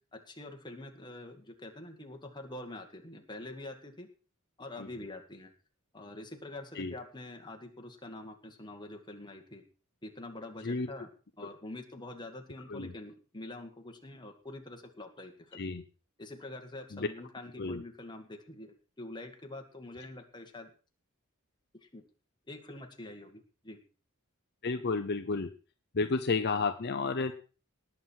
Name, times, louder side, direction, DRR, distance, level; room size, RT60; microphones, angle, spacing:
voice 1, 0.1-4.1 4.6-5.5 5.9-9.6 10.0-11.1 11.4-15.7 16.2-20.7 21.8-22.0 22.5-23.8, left 2 dB, 20° left, 3 dB, 2.0 m, -45 dB
voice 2, 24.6-25.5 25.9-27.3, left 4 dB, 50° left, 8 dB, 0.7 m, -31 dB
19.0 x 7.4 x 4.6 m, 0.37 s
head